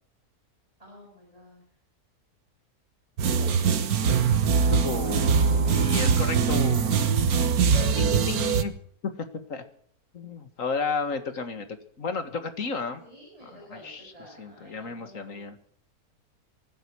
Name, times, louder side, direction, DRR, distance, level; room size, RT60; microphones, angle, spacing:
voice 1, 0.8-1.6 3.2-3.5 7.7-8.4 12.7-15.5, right 1 dB, 20° right, -3 dB, 7.0 m, -44 dB
sound 1, 3.2-8.6, right 6 dB, 70° right, 1.6 m, -22 dB
voice 2, 4.6-7.0 7.9-8.7 9.0-9.6 10.1-11.7 12.0-13.0 13.4-15.6, left 4 dB, 55° left, 9 dB, 2.1 m, -33 dB
24.5 x 10.0 x 4.7 m, 0.62 s
omnidirectional pair, 1.6 m